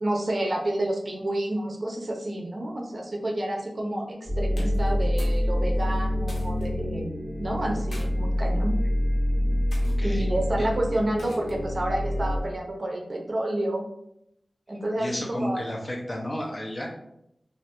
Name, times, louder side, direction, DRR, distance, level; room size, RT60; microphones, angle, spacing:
voice 1, 0.0-8.7 10.0-13.9 14.7-15.7, right 1 dB, 50° right, 0 dB, 0.5 m, -29 dB
sound 1, 4.3-12.4, left 1 dB, 5° right, 1.3 m, -26 dB
sound 2, 4.5-5.4 5.7-6.7 7.6-8.1 8.8-9.1 9.7-10.0 11.2-11.7, left 1 dB, 85° left, 0.8 m, -45 dB
voice 2, 9.8-10.3 15.0-16.9, equal, 30° left, -1 dB, 0.7 m, -32 dB
3.1 x 2.5 x 2.9 m, 0.80 s
wide cardioid pair, 90°, 0 cm